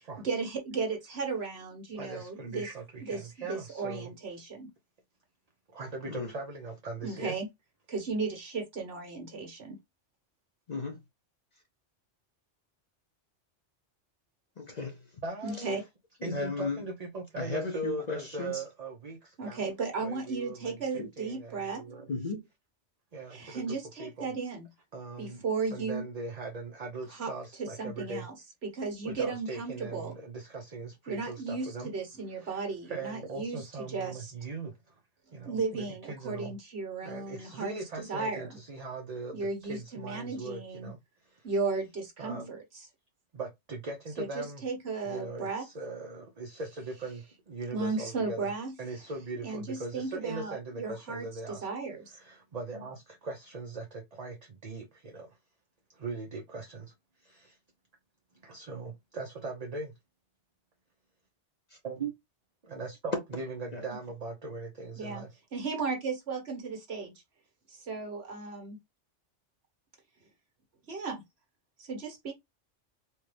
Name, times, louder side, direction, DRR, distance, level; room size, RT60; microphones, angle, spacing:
voice 1, 0.0-2.7 3.0-4.7 7.0-7.5 7.9-9.8 15.4-15.8 19.4-21.8 23.3-24.7 25.2-26.0 27.1-27.3 27.6-28.3 28.6-30.1 31.1-33.6 33.9-34.3 35.4-38.6 39.3-40.9 41.4-42.6 44.2-45.6 47.7-48.7 49.4-52.2 65.0-65.2 65.5-67.1 67.7-68.8 70.9-71.2 71.8-72.3, right 4 dB, 60° right, 1.5 m, -35 dB
voice 2, 1.9-4.1 5.7-7.3 15.2-15.8 16.2-19.6 20.0-22.1 23.1-24.3 24.9-25.4 25.7-28.3 29.0-31.9 32.3-35.0 35.3-36.5 37.0-41.5 42.2-42.5 43.3-44.6 45.0-48.5 48.8-51.7 52.1-55.4 55.9-57.6 58.3-59.9 61.8-62.1 62.6-65.3, right 3 dB, 40° right, 0.7 m, -40 dB
voice 3, 10.7-11.0 14.6-15.0 16.2-16.8 17.4-18.6 21.0-21.1 22.1-22.4 61.7-61.8 63.7-63.8, left 3 dB, 45° left, 0.7 m, -35 dB
4.4 x 2.3 x 3.2 m
omnidirectional pair, 1.2 m